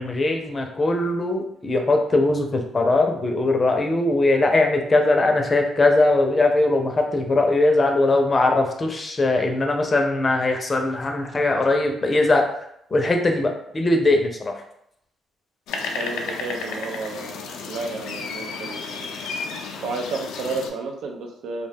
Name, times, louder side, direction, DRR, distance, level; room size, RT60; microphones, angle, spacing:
voice 1, 0.0-12.4 12.9-14.5, left 2 dB, 30° left, 3 dB, 0.5 m, -20 dB
sound 1, 15.7-20.7, left 4 dB, 85° left, 0.4 m, -32 dB
voice 2, 15.9-19.1 19.8-21.7, right 3 dB, 85° right, 3 dB, 0.4 m, -32 dB
2.3 x 2.2 x 3.3 m, 0.74 s
cardioid pair, 90°, 0 cm